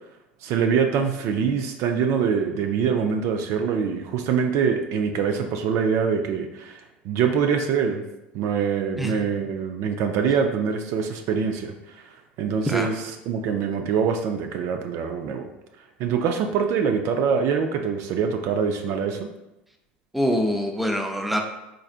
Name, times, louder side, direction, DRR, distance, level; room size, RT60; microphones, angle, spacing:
voice 1, 0.4-8.0 8.3-11.7 12.4-12.9 13.3-15.5 16.0-19.3, right 6 dB, 55° right, 5 dB, 0.4 m, -24 dB
voice 2, 20.1-21.4, equal, ahead, 3 dB, 0.5 m, -24 dB
3.8 x 3.2 x 2.4 m, 0.94 s
hypercardioid pair, 75°, 6 cm